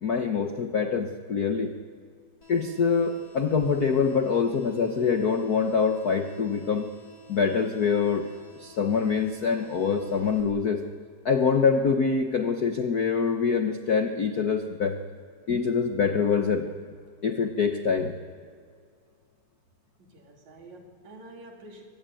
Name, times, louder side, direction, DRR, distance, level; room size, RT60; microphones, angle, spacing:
voice 1, 0.0-1.7 2.5-6.9 7.3-8.3 8.6-10.8 11.2-15.0 15.5-16.7 17.2-18.1, left 5 dB, 65° left, 6 dB, 0.9 m, -25 dB
sound 1, 2.4-10.4, right 1 dB, 50° left, 5.3 m, -51 dB
voice 2, 20.0-21.8, right 1 dB, 75° right, 2 dB, 4.3 m, -48 dB
24.0 x 20.5 x 9.2 m, 2.2 s
omnidirectional pair, 3.3 m